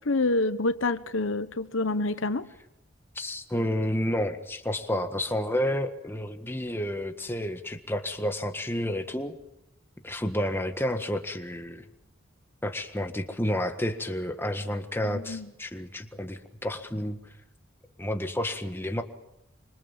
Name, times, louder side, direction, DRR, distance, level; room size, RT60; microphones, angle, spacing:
voice 1, 0.0-2.5 15.1-15.5, left 2 dB, 70° left, 1.1 m, -27 dB
voice 2, 3.2-9.4 10.0-11.8 12.6-17.2 18.0-19.0, left 1 dB, 10° left, 1.6 m, -30 dB
26.5 x 26.0 x 7.4 m
head